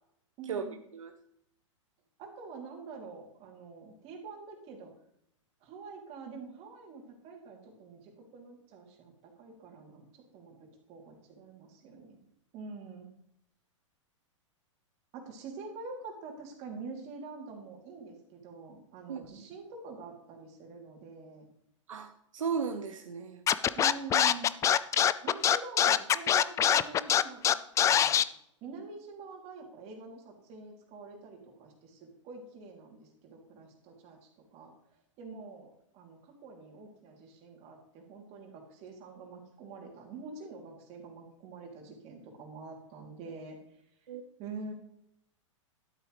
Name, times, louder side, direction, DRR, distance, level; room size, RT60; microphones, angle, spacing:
voice 1, 0.4-0.8 2.2-4.9 5.6-12.2 12.5-13.1 15.1-21.5 23.7-24.5 25.2-28.2 28.6-34.7 35.2-43.6 44.4-44.7, right 4 dB, 40° right, 1 dB, 3.0 m, -46 dB
voice 2, 21.9-23.4 35.3-35.4 44.1-44.2, right 6 dB, 80° right, 6 dB, 0.9 m, -35 dB
Scratching (performance technique), 23.5-28.2, left 9 dB, 20° left, 0.4 m, -23 dB
12.0 x 8.0 x 3.3 m, 0.75 s
hypercardioid pair, 110°, 16 cm